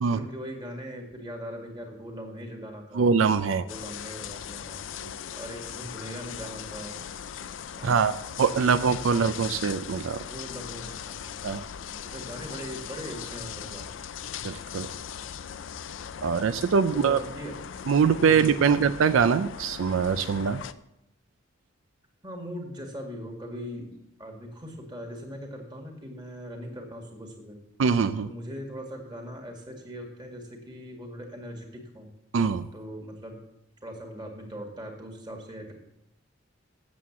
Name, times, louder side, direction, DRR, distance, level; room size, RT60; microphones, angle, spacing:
voice 1, 0.1-3.1 3.6-4.9 5.4-7.0 7.8-8.2 10.3-11.4 12.0-14.0 16.9-17.6 18.2-18.8 22.2-23.9 24.2-27.6 28.2-32.1 32.7-33.4 33.8-35.7, equal, 20° right, 2 dB, 2.0 m, -40 dB
voice 2, 2.9-3.6 5.0-5.1 7.8-8.1 8.4-10.2 11.4-11.6 14.4-14.9 16.2-17.2 17.9-20.6 27.8-28.3 32.3-32.7, right 6 dB, 80° right, 11 dB, 0.4 m, -23 dB
sound 1, 3.7-20.7, left 8 dB, 70° left, 0.4 m, -39 dB
8.4 x 7.5 x 7.2 m, 0.82 s
head